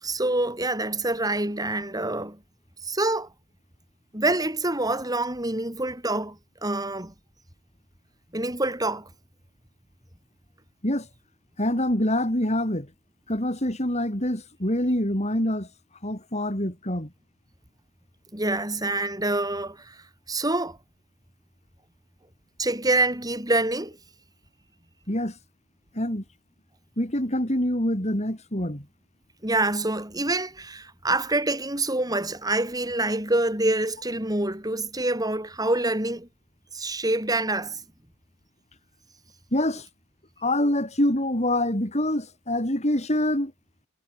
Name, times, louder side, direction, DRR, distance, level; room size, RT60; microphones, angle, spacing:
voice 1, 0.0-2.4 2.8-3.3 4.1-7.1 8.3-9.1 18.3-20.8 22.6-24.0 29.4-36.3 36.7-37.8, right 2 dB, 15° right, 5.5 m, -26 dB
voice 2, 11.6-12.9 13.3-15.7 16.0-17.1 25.1-25.4 25.9-26.2 27.0-28.8 39.5-39.9 40.4-43.5, left 1 dB, 30° left, 5.0 m, -25 dB
head